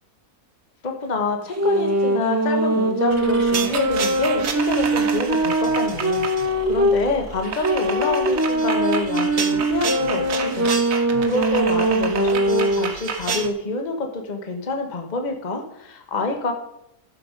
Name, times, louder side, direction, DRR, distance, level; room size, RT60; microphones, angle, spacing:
voice 1, 0.8-16.5, left 3 dB, 30° left, 4 dB, 1.3 m, -27 dB
sound 1, 1.5-7.0 7.6-13.0, right 1 dB, 20° right, 0.5 m, -21 dB
sound 2, 3.1-13.5, right 6 dB, 60° right, 1.4 m, -30 dB
12.0 x 6.5 x 5.2 m, 0.83 s
omnidirectional pair, 1.7 m